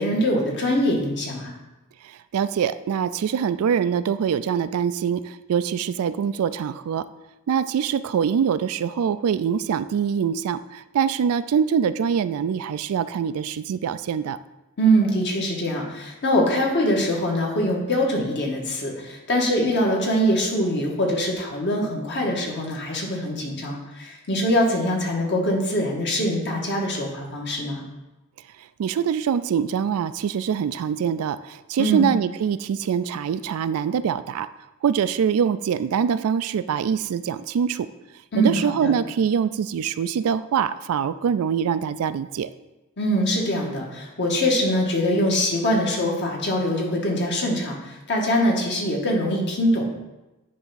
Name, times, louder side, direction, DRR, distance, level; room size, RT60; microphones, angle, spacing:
voice 1, 0.0-1.5 14.8-27.8 31.8-32.1 38.3-38.9 43.0-49.9, equal, 55° left, -1 dB, 1.7 m, -23 dB
voice 2, 2.0-7.1 7.5-14.4 28.8-34.5 34.8-37.9 38.4-42.5, right 7 dB, 70° right, 15 dB, 0.3 m, -24 dB
9.5 x 3.5 x 5.7 m, 1.0 s
head